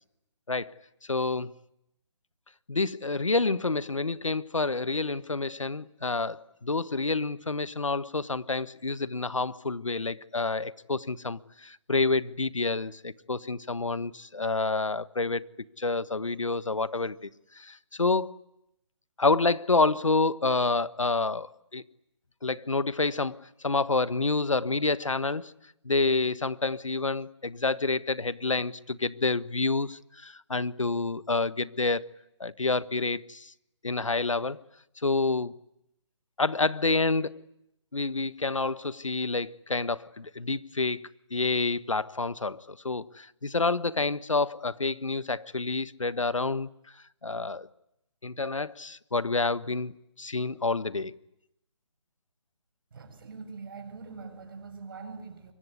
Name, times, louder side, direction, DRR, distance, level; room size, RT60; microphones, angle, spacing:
voice 1, 1.1-1.5 2.7-15.4 15.8-17.3 17.5-18.3 19.2-21.8 22.4-23.4 23.6-25.5 25.8-32.0 32.4-33.5 33.8-34.6 35.0-35.5 36.4-37.3 37.9-41.0 41.3-46.7 47.2-47.7 48.2-51.1, left 3 dB, 90° left, 1.4 m, -28 dB
voice 2, 52.9-55.5, right 4 dB, 45° right, 7.5 m, -43 dB
25.0 x 24.5 x 9.7 m
figure-of-eight pair, 155°, 16 cm